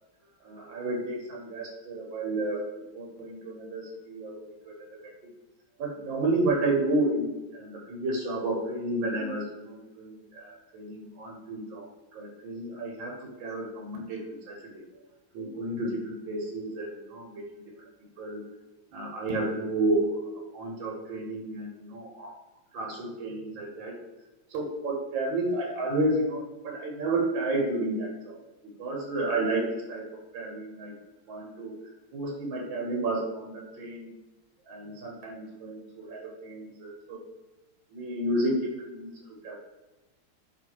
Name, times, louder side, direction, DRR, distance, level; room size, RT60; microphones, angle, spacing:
voice 1, 0.4-2.6 2.9-4.7 5.8-14.8 15.3-17.4 18.2-18.4 18.9-22.3 22.7-24.0 24.5-28.4 28.8-30.9 31.3-31.7 32.1-34.1 34.7-37.2 37.9-39.2 39.4-39.6, right 2 dB, 65° right, -1 dB, 1.5 m, -31 dB
3.2 x 3.0 x 4.3 m, 1.0 s
omnidirectional pair, 2.4 m